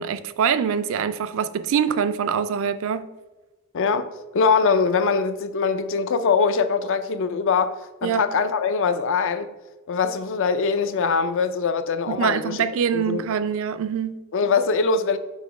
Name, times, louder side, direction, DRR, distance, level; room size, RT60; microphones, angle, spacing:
voice 1, 0.0-3.1 8.0-8.3 12.1-14.2, right 7 dB, 65° right, 0.4 m, -24 dB
voice 2, 3.7-7.7 8.0-9.5 9.9-12.6 12.9-13.2 14.3-15.2, left 5 dB, 60° left, 0.5 m, -22 dB
6.5 x 3.0 x 4.9 m
head